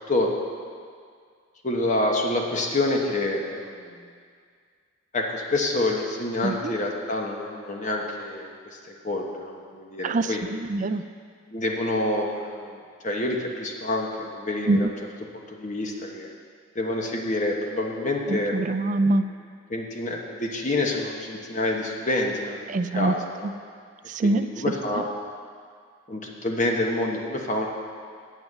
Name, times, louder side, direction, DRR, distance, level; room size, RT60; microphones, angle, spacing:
voice 1, 1.6-4.1 5.1-8.5 8.8-10.4 11.5-14.9 15.3-16.3 16.7-18.5 19.1-19.2 19.7-23.5 24.2-25.1 26.1-27.7, left 2 dB, 35° left, 0 dB, 1.1 m, -27 dB
voice 2, 6.4-6.7 10.0-11.0 14.7-14.9 18.3-19.3 22.7-23.1 23.4-23.5 24.1-24.5 24.9-25.0, right 2 dB, 40° right, 10 dB, 0.3 m, -24 dB
8.0 x 7.4 x 7.9 m, 2.1 s
head